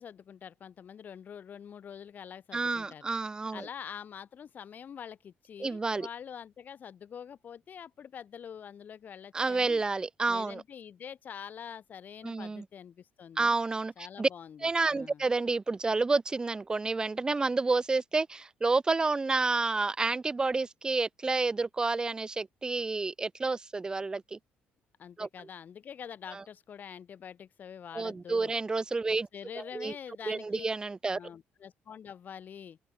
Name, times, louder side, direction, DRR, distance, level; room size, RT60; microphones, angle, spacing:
voice 1, 0.0-3.1 3.5-9.8 10.3-13.6 14.0-15.2 25.0-28.5 29.1-30.7 31.1-32.8, left 8 dB, 45° left, 1.9 m, -45 dB
voice 2, 2.5-3.7 5.6-6.1 9.3-10.6 12.2-12.6 13.4-14.3 14.6-24.4 25.2-25.3 26.3-26.4 27.9-29.3 29.6-29.9 30.2-31.2, right 3 dB, 20° right, 0.5 m, -29 dB
open air
cardioid pair, 105°, 4 cm